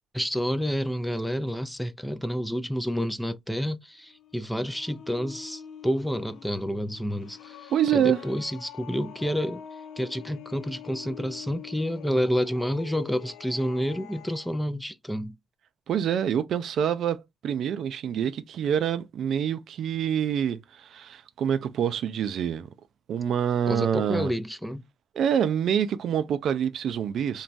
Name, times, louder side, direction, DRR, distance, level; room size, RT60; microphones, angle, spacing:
voice 1, 0.1-9.6 10.0-15.4 23.7-24.8, equal, 5° left, 0.4 m, -29 dB
sound 1, 4.0-14.6, left 9 dB, 75° left, 0.4 m, -45 dB
voice 2, 7.7-8.2 15.9-22.7 23.1-24.3 25.2-27.4, right 9 dB, 70° right, 0.4 m, -26 dB
3.0 x 2.2 x 2.5 m
cardioid pair, 90°, 0 cm